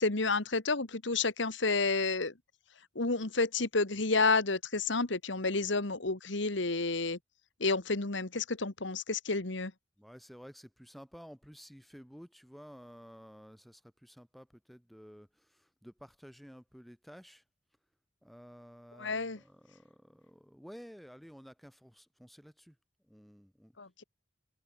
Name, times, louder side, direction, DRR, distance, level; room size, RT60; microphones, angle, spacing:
voice 1, 0.0-2.3 3.0-7.2 7.6-9.7 19.0-19.4 23.8-24.0, left 3 dB, 65° left, 1.7 m, -30 dB
voice 2, 10.0-17.4 18.2-22.8 23.1-23.7, equal, ahead, 4.0 m, -53 dB
head